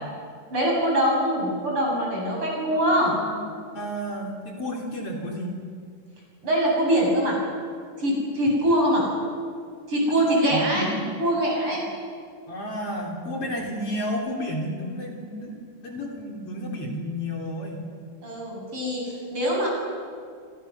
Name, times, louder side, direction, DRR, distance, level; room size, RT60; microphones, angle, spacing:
voice 1, 0.5-3.2 6.4-7.4 8.0-9.1 9.9-10.9 11.2-11.8 18.2-19.7, equal, 40° right, -2 dB, 8.2 m, -23 dB
voice 2, 2.7-3.5 3.7-5.6 10.3-11.0 12.5-17.8, equal, 45° left, 0 dB, 4.2 m, -32 dB
27.5 x 25.0 x 6.9 m, 2.2 s
omnidirectional pair, 3.6 m